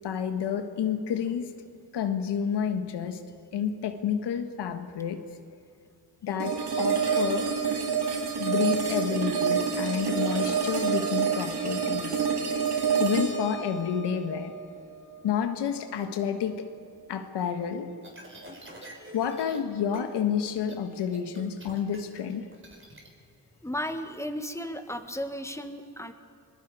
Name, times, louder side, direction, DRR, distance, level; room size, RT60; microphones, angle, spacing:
voice 1, 0.0-1.6 1.9-3.2 3.5-5.2 6.2-7.5 8.4-12.3 13.0-14.5 15.2-16.7 17.1-17.9 19.1-22.5, left 8 dB, 90° left, 8 dB, 1.5 m, -29 dB
sound 1, 6.4-15.4, right 6 dB, 75° right, 3.0 m, -28 dB
sound 2, 18.0-19.6 19.9-20.2 20.5-23.1, right 1 dB, 30° right, 4.6 m, -46 dB
voice 2, 23.6-26.1, equal, 5° left, 7 dB, 1.6 m, -34 dB
26.5 x 21.5 x 4.9 m, 2.3 s
cardioid pair, 65°, 40 cm